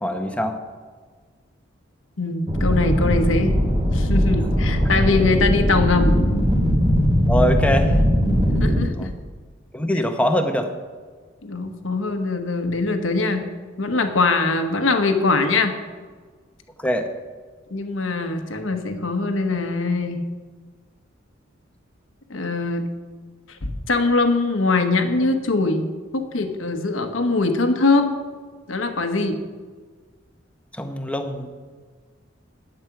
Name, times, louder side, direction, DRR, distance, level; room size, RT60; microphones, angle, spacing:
voice 1, 0.0-0.6 7.3-8.0 8.9-9.1 9.7-10.7 16.8-17.1 30.7-31.5, equal, 5° left, 5 dB, 0.9 m, -23 dB
voice 2, 2.2-3.6 3.9-6.2 8.6-9.1 9.9-10.0 11.4-13.5 13.8-15.8 17.7-20.3 22.3-22.9 23.6-28.2 28.7-29.4, left 3 dB, 85° left, 6 dB, 1.1 m, -22 dB
sound 1, 2.5-8.8, equal, 25° right, 1.9 m, -19 dB
11.0 x 8.9 x 5.9 m, 1.5 s
head